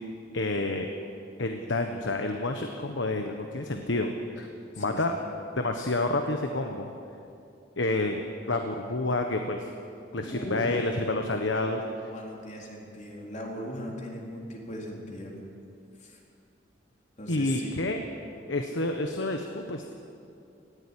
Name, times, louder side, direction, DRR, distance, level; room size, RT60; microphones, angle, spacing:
voice 1, 0.3-0.9 1.4-4.5 4.8-5.1 5.6-6.9 7.8-8.2 8.5-9.7 10.1-11.8 17.3-18.0 18.5-19.8, left 2 dB, 80° left, 4 dB, 1.3 m, -29 dB
voice 2, 4.7-5.4 10.3-10.8 11.5-15.3 16.0-16.2 17.2-17.8, equal, 40° left, -1 dB, 4.0 m, -39 dB
18.5 x 15.0 x 10.0 m, 2.6 s
head